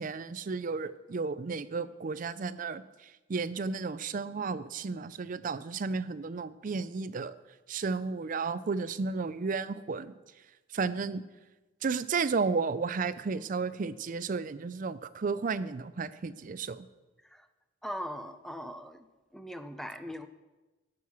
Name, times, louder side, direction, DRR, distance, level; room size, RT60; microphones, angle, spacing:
voice 1, 0.0-7.3 7.7-10.2 10.7-11.2 11.8-16.9, right 4 dB, 45° right, 15 dB, 0.4 m, -33 dB
voice 2, 17.8-19.1 19.3-20.3, equal, ahead, 9 dB, 0.6 m, -40 dB
11.0 x 6.4 x 6.1 m, 1.1 s
head